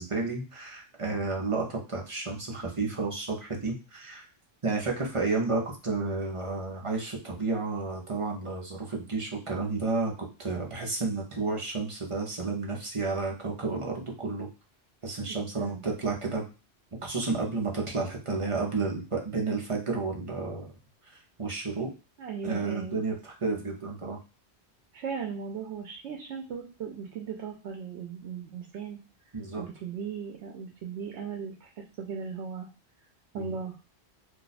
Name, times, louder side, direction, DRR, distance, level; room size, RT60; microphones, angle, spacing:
voice 1, 0.0-4.3 4.6-10.1 10.4-14.5 15.0-16.5 17.0-20.7 21.1-21.9 22.4-24.2 29.3-29.6 33.3-33.5, right 3 dB, 35° right, -1 dB, 0.7 m, -31 dB
voice 2, 15.2-15.8 22.2-23.0 24.9-29.0 29.6-32.7 33.3-33.7, right 6 dB, 80° right, 1 dB, 0.9 m, -37 dB
2.5 x 2.3 x 4.0 m, 0.33 s
omnidirectional pair, 1.1 m